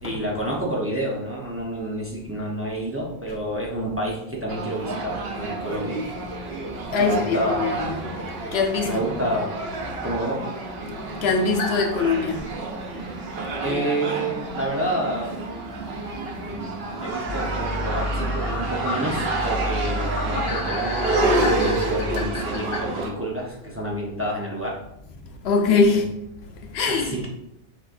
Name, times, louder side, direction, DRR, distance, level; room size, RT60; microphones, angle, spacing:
voice 1, 0.0-6.0 7.0-7.8 8.8-9.5 10.0-10.5 13.6-15.3 16.4-24.8 25.9-26.0 26.9-27.3, right 1 dB, 15° right, 0.6 m, -29 dB
sound 1, 4.5-23.1, right 2 dB, 75° right, 1.0 m, -29 dB
voice 2, 6.7-9.1 10.0-10.1 10.8-12.5 13.0-13.1 15.9-16.3 25.3-26.1 26.4-27.2, left 4 dB, 90° left, 0.9 m, -24 dB
sound 2, 11.6-11.9 12.4-12.5 13.9-14.0 14.6-14.7 15.0-15.1 17.9-22.8, left 3 dB, 50° left, 0.8 m, -32 dB
sound 3, 17.2-22.2, equal, 10° left, 0.9 m, -31 dB
5.9 x 3.0 x 2.5 m
omnidirectional pair, 1.0 m